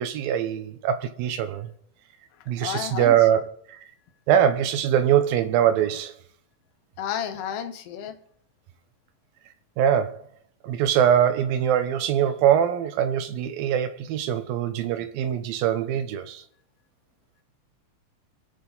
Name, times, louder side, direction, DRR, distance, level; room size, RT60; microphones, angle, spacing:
voice 1, 0.0-1.7 2.5-3.8 4.3-6.1 9.8-10.2 10.6-16.4, right 9 dB, 85° right, 2.8 m, -23 dB
voice 2, 2.6-3.2 7.0-8.2, left 9 dB, 60° left, 1.8 m, -31 dB
24.0 x 8.3 x 4.0 m
omnidirectional pair, 4.0 m